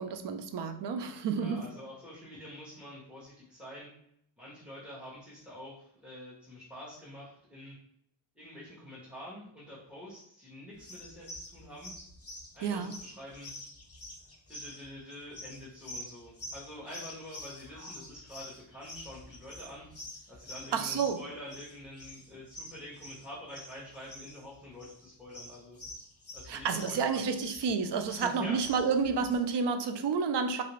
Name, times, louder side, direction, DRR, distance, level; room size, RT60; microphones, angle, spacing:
voice 1, 0.0-1.6 12.6-12.9 20.7-21.2 26.5-30.6, right 5 dB, 65° right, 8 dB, 0.5 m, -30 dB
voice 2, 1.4-3.9 4.4-7.8 8.4-11.9 12.5-13.5 14.5-19.9 20.3-25.8 26.3-27.2 28.1-28.6, left 1 dB, 5° right, -9 dB, 0.9 m, -46 dB
sound 1, 10.8-27.7 28.0-29.4, left 1 dB, 30° left, 0.9 m, -47 dB
2.9 x 2.5 x 3.0 m, 0.70 s
wide cardioid pair, 80°, 46 cm